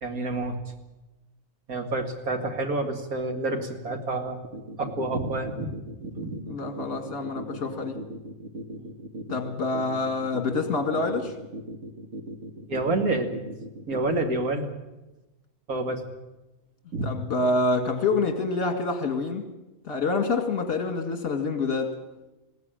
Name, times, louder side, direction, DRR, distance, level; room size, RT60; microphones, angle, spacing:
voice 1, 0.0-0.6 1.7-4.4 4.8-5.7 6.0-6.4 8.8-8.9 12.7-13.3 13.9-14.7 15.7-16.1 16.9-17.1 17.4-17.5, right 2 dB, 75° right, 4 dB, 2.7 m, -28 dB
sound 1, 4.4-14.4, right 1 dB, 50° right, 2.1 m, -38 dB
voice 2, 6.4-8.0 9.3-11.3 17.0-19.5 19.8-22.0, left 3 dB, 55° left, 5 dB, 2.4 m, -27 dB
20.5 x 16.0 x 9.0 m, 1.0 s
omnidirectional pair, 1.5 m